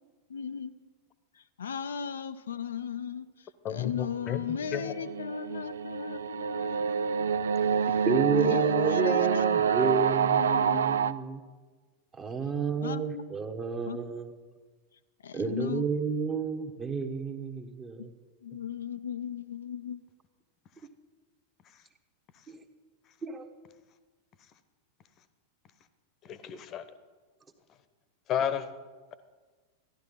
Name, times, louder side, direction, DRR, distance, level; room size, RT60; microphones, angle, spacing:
voice 1, 0.3-0.7 1.3-7.3 7.6-8.1 8.4-10.9 12.8-13.3 13.9-14.0 15.2-15.8 18.0-18.1 18.4-20.0, left 7 dB, 70° left, 0.5 m, -37 dB
voice 2, 3.6-4.9 26.2-26.8 28.3-28.7, left 9 dB, 35° left, 1.0 m, -32 dB
sound 1, 4.4-11.1, right 7 dB, 65° right, 0.4 m, -27 dB
voice 3, 8.1-11.4 12.1-14.3 15.3-18.1 22.5-22.6 23.2-23.5, right 5 dB, 20° right, 1.3 m, -31 dB
14.5 x 11.5 x 5.5 m
figure-of-eight pair, 90°, 0 cm